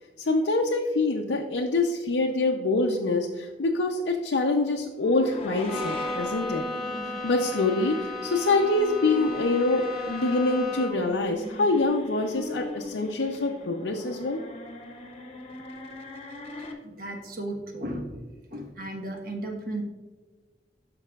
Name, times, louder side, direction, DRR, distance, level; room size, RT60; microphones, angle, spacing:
voice 1, 0.2-6.6 7.2-14.4, left 2 dB, 80° left, 0 dB, 0.6 m, -25 dB
sound 1, 5.0-16.7, left 2 dB, 35° left, 1.0 m, -41 dB
Bowed string instrument, 5.7-11.2, left 2 dB, ahead, 1.3 m, -35 dB
voice 2, 16.8-18.2 18.5-19.8, right 1 dB, 55° right, 2 dB, 1.2 m, -35 dB
12.5 x 5.5 x 2.4 m, 1.3 s
head